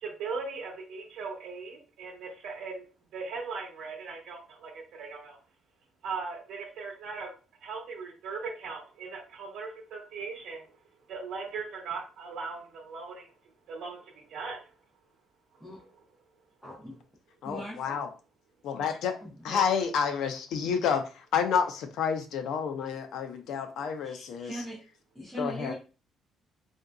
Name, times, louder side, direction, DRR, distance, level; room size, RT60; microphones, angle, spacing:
voice 1, 0.0-2.8 3.1-5.4 6.0-7.3 7.6-10.8 11.1-13.3 13.7-14.7, right 4 dB, 70° right, 0.8 m, -39 dB
voice 2, 16.6-17.0 17.4-18.0 19.2-19.6 24.0-24.8 25.1-25.7, equal, 5° left, 0.9 m, -40 dB
voice 3, 17.4-18.1 18.6-24.5 25.4-25.7, left 7 dB, 70° left, 0.5 m, -29 dB
3.6 x 2.6 x 2.3 m
cardioid pair, 160°, 0 cm